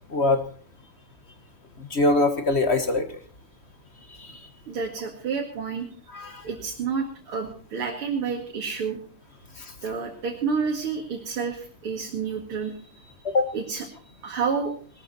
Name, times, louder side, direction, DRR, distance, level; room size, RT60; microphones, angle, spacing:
voice 1, 1.8-3.1 4.2-4.3 6.1-6.4 13.2-13.5, left 2 dB, 35° left, 9 dB, 1.2 m, -22 dB
voice 2, 4.7-5.9 6.4-9.0 9.8-13.1 13.5-14.7, right 5 dB, 75° right, 0 dB, 2.9 m, -30 dB
20.0 x 13.0 x 4.1 m, 0.43 s
omnidirectional pair, 2.4 m